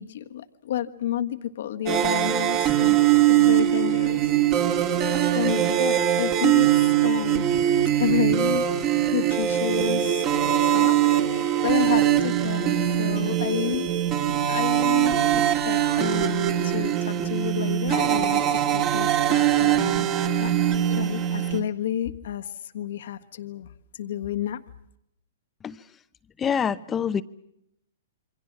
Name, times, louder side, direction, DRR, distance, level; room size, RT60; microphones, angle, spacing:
voice 1, 0.0-4.3 5.0-7.5 8.0-10.3 10.6-13.9 14.5-20.1 20.4-20.5 20.9-24.6, left 11 dB, 65° left, 8 dB, 1.4 m, -31 dB
sound 1, 1.9-21.6, right 11 dB, 35° right, 2.6 m, -22 dB
voice 2, 26.4-27.2, left 7 dB, 20° left, 14 dB, 0.9 m, -26 dB
28.0 x 24.0 x 6.0 m, 0.78 s
hypercardioid pair, 125°, 0 cm